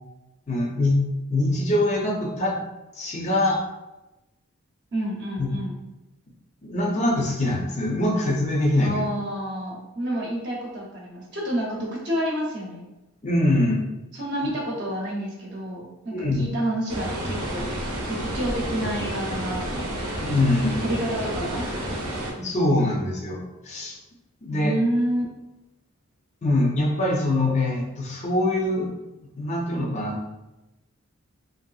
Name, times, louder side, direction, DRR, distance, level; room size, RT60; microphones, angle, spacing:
voice 1, 0.5-1.0 1.3-2.6 2.9-3.6 5.4-5.5 6.6-9.0 13.2-13.8 16.1-16.4 20.2-20.8 22.4-24.0 24.4-24.7 26.4-28.9 29.4-30.2, left 1 dB, 30° left, -1 dB, 0.4 m, -23 dB
voice 2, 4.9-5.7 8.8-12.8 14.1-17.6 18.0-20.0 20.8-21.6 22.3-22.6 24.5-25.2, right 1 dB, 50° right, -3 dB, 0.7 m, -29 dB
sound 1, 16.9-22.3, right 1 dB, 85° right, 0.8 m, -30 dB
3.3 x 2.6 x 2.3 m, 1.0 s
head